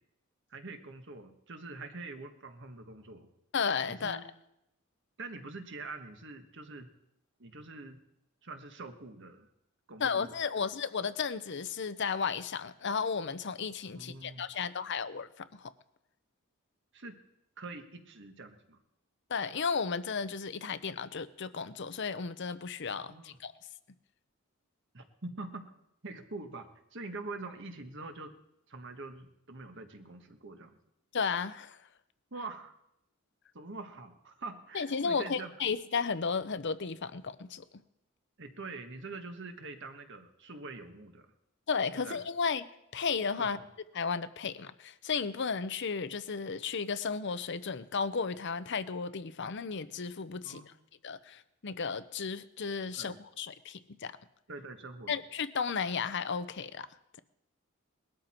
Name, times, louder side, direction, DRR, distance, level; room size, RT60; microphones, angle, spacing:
voice 1, 0.5-3.3 3.9-4.2 5.2-6.9 7.4-8.0 8.4-9.5 9.9-10.7 13.9-14.4 16.9-17.2 17.6-18.8 23.0-23.4 24.9-25.7 26.0-28.3 28.7-30.8 32.3-32.7 33.5-35.5 38.4-41.3 41.9-42.2 43.4-43.6 50.4-50.8 52.9-53.2 54.5-55.2, right 3 dB, 55° right, 6 dB, 1.4 m, -45 dB
voice 2, 3.5-4.2 10.0-15.7 19.3-23.5 31.1-31.8 34.7-37.6 41.7-42.6 42.9-43.6 43.9-50.6 51.0-54.1 55.1-56.9, left 5 dB, 55° left, 13 dB, 0.7 m, -34 dB
20.0 x 13.0 x 4.4 m, 0.83 s
head